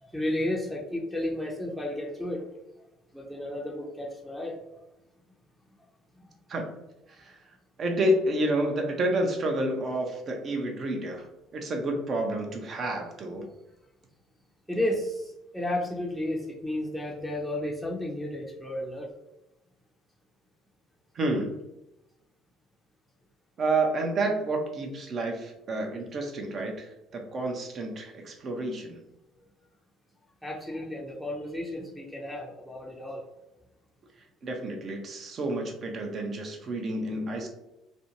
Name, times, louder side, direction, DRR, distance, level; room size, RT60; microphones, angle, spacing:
voice 1, 0.0-2.5 3.1-4.6 6.1-6.3 14.7-19.1 30.4-33.2 37.4-37.5, left 1 dB, 5° right, -2 dB, 0.6 m, -32 dB
voice 2, 7.8-11.3 11.5-13.5 21.1-21.6 23.6-29.0 34.4-37.5, right 1 dB, 45° right, 3 dB, 0.6 m, -29 dB
2.5 x 2.2 x 2.8 m, 0.91 s
hypercardioid pair, 60°, 0 cm